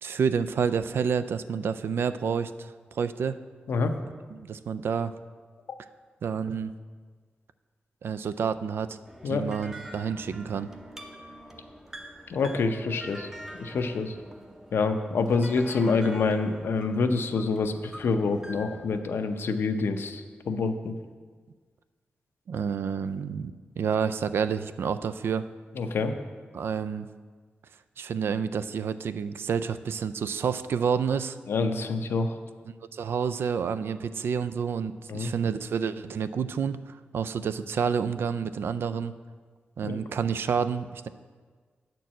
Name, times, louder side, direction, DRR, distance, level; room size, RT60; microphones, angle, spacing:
voice 1, 0.0-3.4 4.3-5.1 6.2-6.7 8.0-9.0 9.3-10.7 22.5-25.5 26.5-27.1 28.0-31.4 32.9-39.1 39.8-41.1, right 6 dB, 75° right, 12 dB, 0.3 m, -29 dB
sound 1, 9.1-19.0, right 1 dB, 15° right, 0.7 m, -45 dB
voice 2, 12.3-13.3 13.6-14.2 14.7-21.0 25.8-26.1 31.5-32.4 35.1-35.3 39.8-40.0, left 4 dB, 80° left, 7 dB, 0.6 m, -27 dB
9.2 x 4.5 x 7.3 m, 1.5 s
wide cardioid pair, 140°, 4 cm